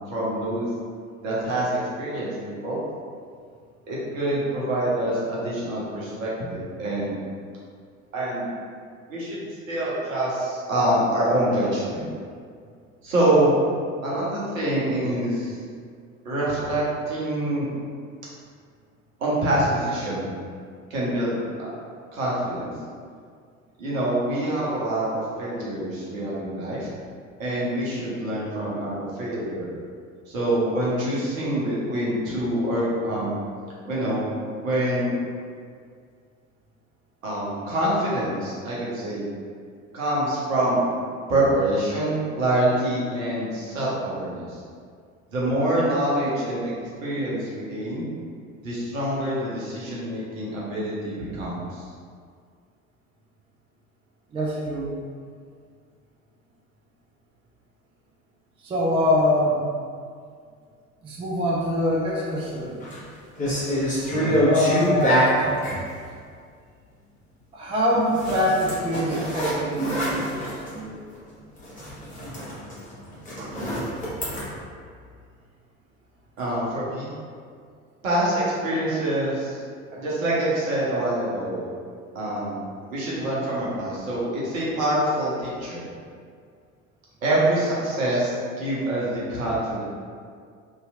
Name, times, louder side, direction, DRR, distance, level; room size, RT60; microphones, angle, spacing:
voice 1, 0.1-0.7 1.2-2.8 3.9-7.2 8.1-8.5 9.1-12.1 13.0-13.6 14.0-15.6 16.2-17.7 19.2-20.3 20.9-21.7 22.1-22.7 23.8-26.9 27.4-29.7 30.3-33.4 33.8-34.3 34.6-35.1 37.2-39.3 39.9-40.8 41.3-44.6 45.3-48.1 48.6-51.9 64.1-64.4 76.4-77.1 78.0-79.6 79.9-81.6 82.1-82.6 82.9-85.8 87.2-89.8, right 1 dB, 70° right, -7 dB, 1.0 m, -25 dB
voice 2, 54.3-54.9 58.6-59.7 61.0-62.8 64.4-65.5 67.5-71.0 73.4-73.5, left 1 dB, 15° right, -4 dB, 0.4 m, -24 dB
sound 1, 62.6-63.0 63.4-65.8 68.1-70.8 71.1-71.3 71.6-74.4, equal, 20° left, 1.0 m, -25 dB
2.9 x 2.8 x 2.4 m, 2.1 s
figure-of-eight pair, 65°, 42 cm